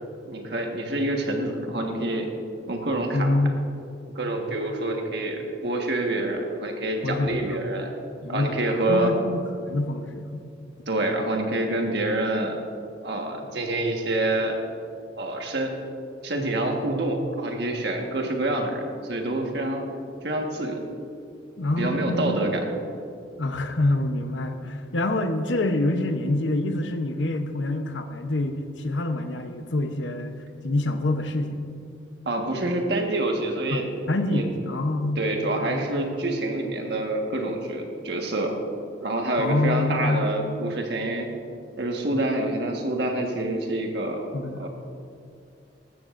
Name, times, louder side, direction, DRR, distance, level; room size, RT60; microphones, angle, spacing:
voice 1, 0.3-2.3 2.7-3.3 4.1-7.9 8.3-9.1 10.9-12.6 13.0-14.6 15.2-15.8 16.2-19.9 20.2-20.8 21.8-22.6 32.2-33.9 34.3-34.4 35.2-38.5 39.0-41.3 41.8-44.3 44.6-44.7, right 1 dB, 65° right, 2 dB, 1.5 m, -27 dB
voice 2, 3.1-3.5 7.0-7.6 8.2-10.4 21.6-22.4 23.4-30.4 30.6-31.7 33.7-35.2 35.6-36.0 39.4-40.3 44.3-44.7, left 2 dB, 90° left, 7 dB, 0.8 m, -26 dB
14.0 x 13.5 x 2.6 m, 2.5 s
head